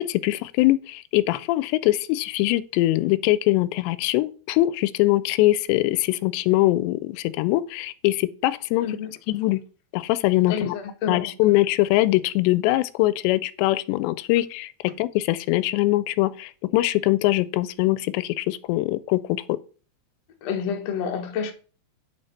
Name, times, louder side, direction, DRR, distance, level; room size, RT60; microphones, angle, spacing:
voice 1, 0.0-8.9 9.3-9.6 9.9-10.8 11.1-19.6, left 17 dB, 85° left, 2.7 m, -22 dB
voice 2, 8.8-9.1 10.5-11.3 20.4-21.5, left 7 dB, 65° left, 1.6 m, -28 dB
9.0 x 6.6 x 4.2 m
omnidirectional pair, 5.0 m